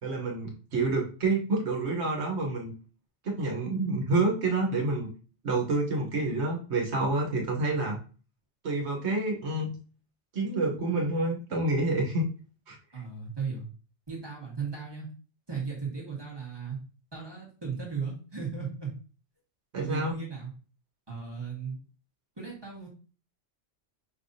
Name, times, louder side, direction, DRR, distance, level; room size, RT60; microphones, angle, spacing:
voice 1, 0.0-2.7 3.2-5.1 5.4-8.0 8.6-9.8 10.3-12.3 12.7-12.8 19.7-20.2, right 2 dB, 65° right, 0 dB, 1.3 m, -28 dB
voice 2, 12.9-13.7 14.1-15.1 15.5-16.8 17.1-18.9 19.8-20.5 21.1-21.8 22.4-22.9, right 5 dB, 20° right, -3 dB, 1.5 m, -36 dB
5.3 x 3.4 x 2.6 m, 0.37 s
omnidirectional pair, 1.2 m